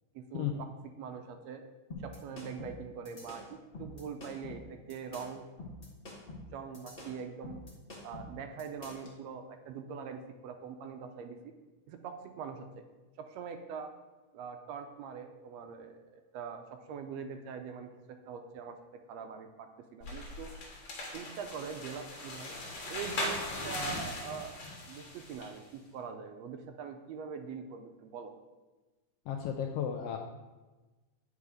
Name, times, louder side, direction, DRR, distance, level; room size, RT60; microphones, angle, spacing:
voice 1, 0.1-0.7 1.0-1.6 2.0-5.4 6.5-7.6 8.0-11.5 11.9-12.8 13.2-13.9 14.3-20.5 21.1-22.5 22.9-28.3, right 6 dB, 75° right, 6 dB, 1.6 m, -43 dB
sound 1, 1.9-9.1, left 2 dB, 30° left, 1.0 m, -46 dB
sound 2, 20.0-25.6, left 1 dB, 55° left, 2.1 m, -39 dB
voice 2, 29.3-30.2, left 9 dB, 85° left, 3 dB, 1.4 m, -33 dB
8.4 x 4.8 x 4.9 m, 1.2 s
omnidirectional pair, 3.3 m